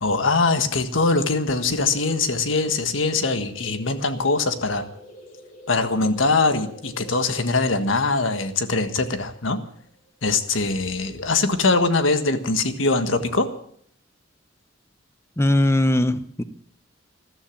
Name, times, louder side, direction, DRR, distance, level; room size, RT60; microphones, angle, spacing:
voice 1, 0.0-4.9 5.7-9.6 10.2-13.5, left 3 dB, 75° left, 9 dB, 1.5 m, -22 dB
sound 1, 1.4-10.7, left 1 dB, 40° left, 2.9 m, -47 dB
voice 2, 15.4-16.4, left 1 dB, 15° left, 13 dB, 0.8 m, -20 dB
14.0 x 13.0 x 7.3 m, 0.63 s
head